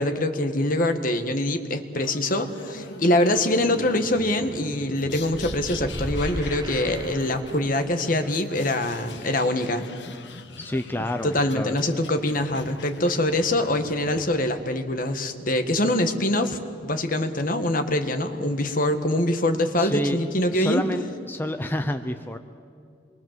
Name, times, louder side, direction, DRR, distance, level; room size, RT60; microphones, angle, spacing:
voice 1, 0.0-9.8 11.2-20.8, left 1 dB, 50° left, 7 dB, 1.7 m, -24 dB
sound 1, 2.0-14.7, left 2 dB, 85° left, 1.5 m, -42 dB
sound 2, 5.3-7.8, right 1 dB, 20° right, 0.9 m, -35 dB
voice 2, 10.6-11.8 19.8-20.2 20.5-22.4, left 1 dB, 10° left, 7 dB, 0.7 m, -28 dB
27.0 x 22.5 x 7.6 m, 2.3 s
head